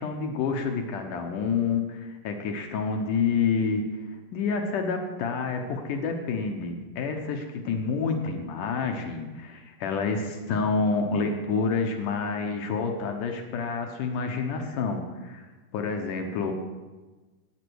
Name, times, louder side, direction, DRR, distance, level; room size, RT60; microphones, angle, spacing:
voice 1, 0.0-3.8 4.3-15.5 15.7-16.5, left 5 dB, 70° left, 4 dB, 2.2 m, -28 dB
12.5 x 8.8 x 6.3 m, 1.2 s
omnidirectional pair, 4.5 m